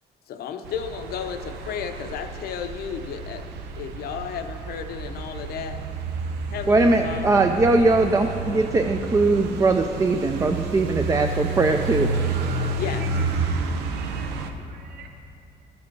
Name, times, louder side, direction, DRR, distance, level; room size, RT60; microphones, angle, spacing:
voice 1, 0.3-3.4 3.8-5.8 6.5-7.5 12.1-12.2 12.7-13.1, left 8 dB, 65° left, 7 dB, 0.7 m, -33 dB
sound 1, 0.6-14.5, right 3 dB, 85° right, 0.6 m, -30 dB
voice 2, 6.7-12.1, right 3 dB, 20° right, 5 dB, 0.4 m, -20 dB
voice 3, 13.8-15.1, right 7 dB, 65° right, 3 dB, 1.0 m, -45 dB
13.0 x 5.2 x 4.6 m, 2.7 s
cardioid pair, 110°, 17 cm